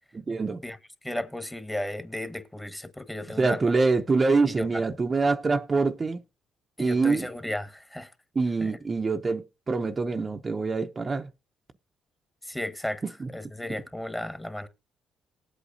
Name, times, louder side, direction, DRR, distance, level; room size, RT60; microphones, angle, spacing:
voice 1, 0.1-0.6 3.4-6.2 6.8-7.3 8.3-11.3 13.0-13.3, right 3 dB, 35° right, 0.8 m, -25 dB
voice 2, 1.0-3.7 4.4-4.7 6.8-8.1 8.6-8.8 12.4-13.0 13.3-14.7, left 1 dB, 10° left, 1.4 m, -34 dB
19.0 x 8.3 x 2.6 m
supercardioid pair, 60°, 0 cm